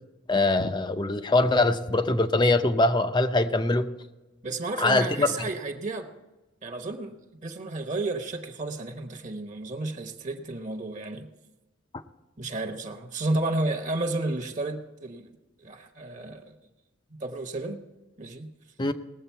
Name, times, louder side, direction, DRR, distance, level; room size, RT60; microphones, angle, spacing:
voice 1, 0.3-3.9 4.8-5.3 18.8-18.9, left 2 dB, 20° left, 10 dB, 0.5 m, -23 dB
voice 2, 4.4-6.1 6.6-11.3 12.4-15.3 15.6-16.6 17.2-17.8 18.2-18.5, right 2 dB, 40° right, 6 dB, 1.0 m, -32 dB
19.5 x 7.7 x 4.5 m, 1.1 s
head